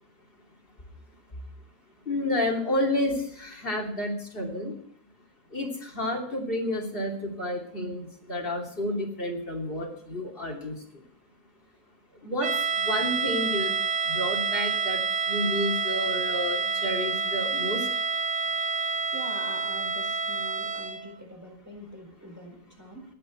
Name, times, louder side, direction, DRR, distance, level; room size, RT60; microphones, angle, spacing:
voice 1, 2.1-4.7 5.5-10.7 12.2-13.7 14.1-15.0 15.2-17.9, left 1 dB, 65° left, -1 dB, 3.1 m, -30 dB
sound 1, 12.4-21.1, right 5 dB, 45° right, 1.0 m, -28 dB
voice 2, 19.1-23.0, equal, 15° right, 0 dB, 4.5 m, -44 dB
20.0 x 9.1 x 4.5 m, 0.65 s
omnidirectional pair, 1.0 m